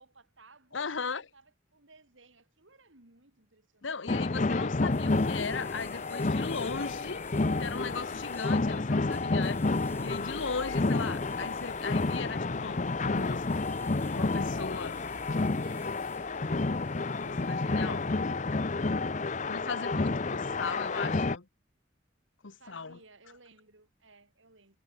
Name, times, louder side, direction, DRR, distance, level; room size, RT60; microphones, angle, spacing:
voice 1, 0.0-4.3 10.4-10.8 14.9-19.0 19.6-21.0 22.6-24.8, right 3 dB, 80° right, 4.9 m, -58 dB
voice 2, 0.7-1.3 3.8-13.7 14.1-15.0 17.2-18.1 19.5-21.5 22.4-23.0, left 4 dB, 75° left, 1.2 m, -38 dB
sound 1, 4.1-21.4, left 3 dB, 40° left, 0.7 m, -30 dB
sound 2, 4.8-20.8, left 3 dB, 10° left, 2.3 m, -56 dB
head